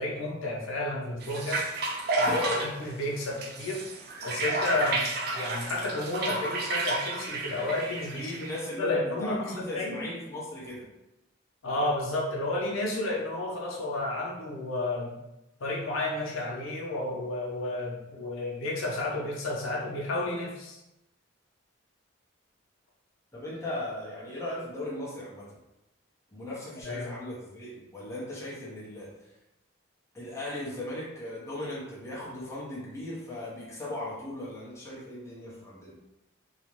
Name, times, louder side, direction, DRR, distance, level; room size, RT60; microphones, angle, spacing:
voice 1, 0.0-1.7 2.2-3.8 4.2-5.1 5.3-8.3 8.8-10.0 11.6-15.2 15.6-20.8 26.8-27.2, left 2 dB, 90° left, -2 dB, 0.6 m, -31 dB
sound 1, 1.2-8.6, right 2 dB, 50° right, 0.3 m, -32 dB
voice 2, 2.3-2.7 8.1-10.9 23.3-25.6 26.3-29.3 30.1-36.0, left 1 dB, 15° left, -7 dB, 0.6 m, -37 dB
2.4 x 2.0 x 2.9 m, 0.95 s
head